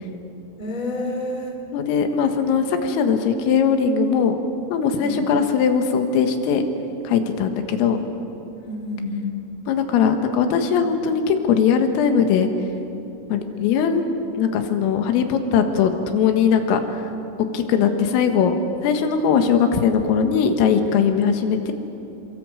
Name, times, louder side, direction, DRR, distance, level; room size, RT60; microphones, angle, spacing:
voice 1, 0.6-1.6 5.0-5.3 8.5-9.4, left 2 dB, 10° left, 2 dB, 2.1 m, -29 dB
voice 2, 1.7-4.4 4.7-6.6 7.1-8.0 9.7-12.5 13.3-14.0 14.4-16.8 17.5-18.5 18.8-21.7, left 6 dB, 90° left, 6 dB, 4.3 m, -20 dB
28.5 x 23.0 x 8.0 m, 2.9 s
omnidirectional pair, 5.8 m